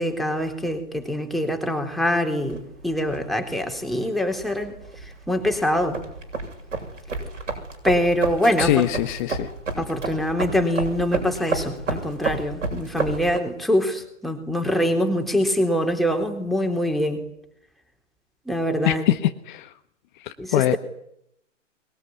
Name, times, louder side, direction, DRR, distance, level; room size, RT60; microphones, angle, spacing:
voice 1, 0.0-4.8 5.3-6.0 7.8-8.9 9.8-17.2 18.5-19.0 20.4-20.8, equal, ahead, 3 dB, 3.8 m, -24 dB
sound 1, 2.5-13.4, right 3 dB, 80° right, 7.6 m, -31 dB
voice 2, 8.6-9.5 18.8-19.7 20.2-20.7, left 14 dB, 40° left, 9 dB, 1.3 m, -23 dB
23.0 x 22.5 x 10.0 m, 0.76 s
figure-of-eight pair, 125°, 38 cm